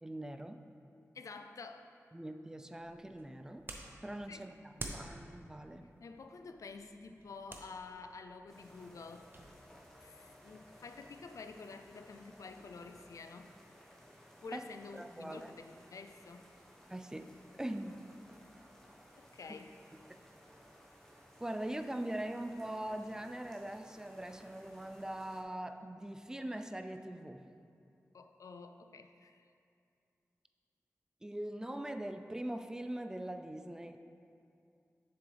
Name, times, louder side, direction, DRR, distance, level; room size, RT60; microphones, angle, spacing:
voice 1, 0.0-0.6 2.1-3.7 4.0-5.9 14.5-14.6 14.9-15.5 16.9-17.3 17.5-18.0 19.5-19.6 20.1-20.2 21.4-27.5 31.2-34.0, right 1 dB, 10° right, 7 dB, 0.4 m, -42 dB
voice 2, 1.1-1.9 4.3-4.4 6.0-9.3 10.0-13.5 14.4-16.5 19.2-19.7 28.1-29.5, left 4 dB, 85° left, 7 dB, 0.4 m, -49 dB
sound 1, 2.8-9.5, right 2 dB, 40° right, 0.7 m, -51 dB
sound 2, 8.5-25.4, equal, 10° left, 1.2 m, -59 dB
7.2 x 7.0 x 3.4 m, 2.5 s
wide cardioid pair, 85°, 5 cm